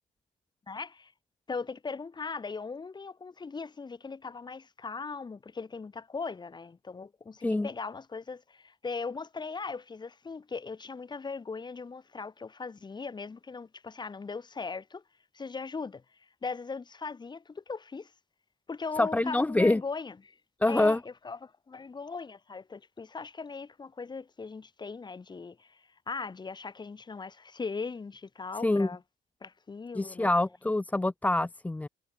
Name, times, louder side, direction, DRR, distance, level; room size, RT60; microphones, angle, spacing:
voice 1, 0.7-1.1 1.5-15.0 15.3-18.1 18.7-20.4 20.7-21.0 21.2-29.0 29.4-30.3, left 4 dB, 25° left, 7.4 m, -39 dB
voice 2, 19.0-19.8 20.6-21.0 28.6-28.9 29.9-31.9, left 2 dB, 10° left, 0.6 m, -26 dB
cardioid pair, 110°, 17 cm